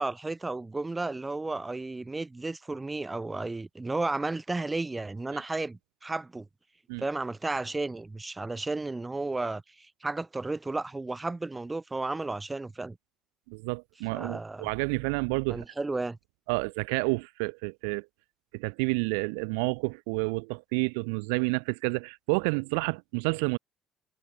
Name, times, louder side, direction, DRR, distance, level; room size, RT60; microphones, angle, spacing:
voice 1, 0.0-6.5 7.0-13.0 14.1-14.7 15.5-16.2, right 3 dB, 20° right, 7.1 m, -33 dB
voice 2, 13.5-15.6 16.5-18.1 18.5-23.6, right 37 dB, 90° right, 2.6 m, -29 dB
supercardioid pair, 75°, 0 cm